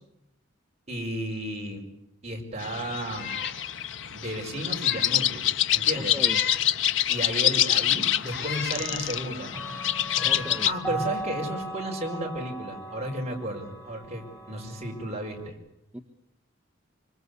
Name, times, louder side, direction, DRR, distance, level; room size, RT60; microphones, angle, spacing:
voice 1, 0.9-1.8 2.2-3.3 4.1-5.4 5.7-6.2 7.1-9.5 10.2-15.6, right 1 dB, 35° right, 1 dB, 5.4 m, -33 dB
sound 1, 2.6-10.7, left 11 dB, 80° left, 1.0 m, -26 dB
Meow, 3.1-3.6 4.0-4.1 4.7-5.2 6.2-6.7 7.6-7.7 8.3-8.8, left 8 dB, 55° left, 2.7 m, -34 dB
voice 2, 6.0-6.4 10.2-10.7 15.9-16.0, equal, 5° right, 2 dB, 1.6 m, -36 dB
Clock, 7.3-7.4 8.7-15.5, right 1 dB, 15° left, 4.5 m, -38 dB
25.5 x 25.0 x 8.3 m, 0.81 s
head